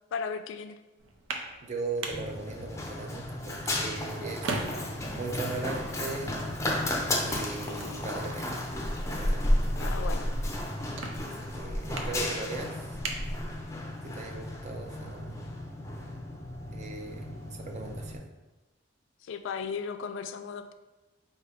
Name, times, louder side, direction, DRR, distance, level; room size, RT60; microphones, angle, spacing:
voice 1, 0.1-0.8 9.8-10.3 19.2-20.7, left 6 dB, 85° left, 9 dB, 0.3 m, -35 dB
sound 1, 1.0-14.1, right 3 dB, 90° right, 0.6 m, -42 dB
voice 2, 1.6-4.6 5.1-6.4 7.3-8.6 9.0-9.5 11.2-12.9 14.0-15.6 16.7-18.2, right 3 dB, 40° right, 3 dB, 0.5 m, -39 dB
Run, 2.1-18.2, left 1 dB, 15° left, 0.5 m, -33 dB
4.7 x 2.8 x 3.4 m, 1.1 s
head